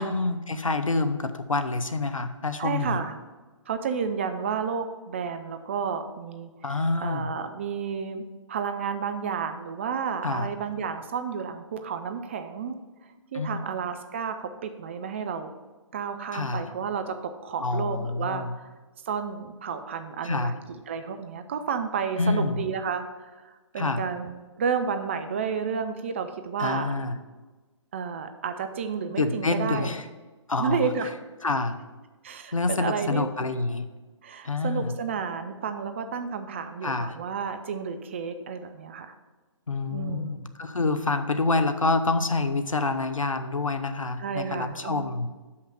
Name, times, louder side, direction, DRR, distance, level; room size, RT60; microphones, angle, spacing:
voice 1, 0.0-3.0 6.6-7.3 10.2-10.5 13.3-13.6 16.3-16.6 17.6-18.5 20.2-20.5 22.2-22.6 23.8-24.0 26.6-27.2 29.2-30.0 30.5-30.9 31.4-31.8 32.5-33.8 34.4-34.9 36.8-37.1 39.7-45.3, left 3 dB, 80° left, 9 dB, 0.8 m, -27 dB
voice 2, 2.6-3.2 3.7-6.5 7.0-12.8 13.3-15.5 15.9-18.7 19.1-26.9 27.9-29.9 30.6-31.1 32.2-33.5 34.2-39.1 39.9-40.4 44.2-45.1, right 6 dB, 25° right, 8 dB, 0.4 m, -31 dB
6.4 x 5.7 x 6.3 m, 1.3 s
figure-of-eight pair, 135°, 17 cm